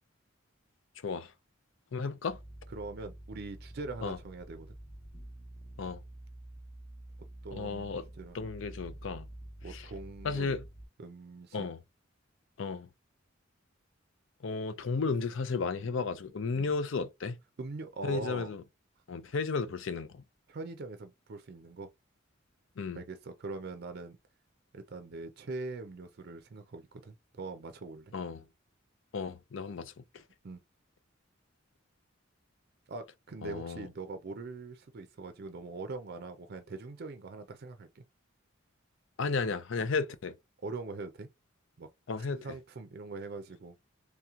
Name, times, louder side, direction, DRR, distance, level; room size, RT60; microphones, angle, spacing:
voice 1, 1.9-2.4 4.0-4.2 5.8-6.0 7.5-8.1 8.3-9.3 9.7-9.9 10.2-10.6 11.5-11.8 12.6-12.9 14.4-17.4 18.0-18.6 19.1-20.2 22.8-23.0 28.1-28.4 29.1-30.2 33.4-33.9 39.2-40.4 42.1-42.5, left 4 dB, 70° left, 0.5 m, -34 dB
sound 1, 2.3-10.9, right 1 dB, 30° left, 1.0 m, -48 dB
voice 2, 2.7-4.8 7.4-8.4 9.6-10.5 11.0-11.7 16.5-16.7 17.6-18.5 20.5-21.9 23.0-24.2 24.7-28.1 30.4-30.6 32.9-38.0 40.6-41.3 41.8-41.9 42.3-43.8, right 3 dB, 55° right, 0.5 m, -42 dB
3.3 x 2.9 x 3.6 m
head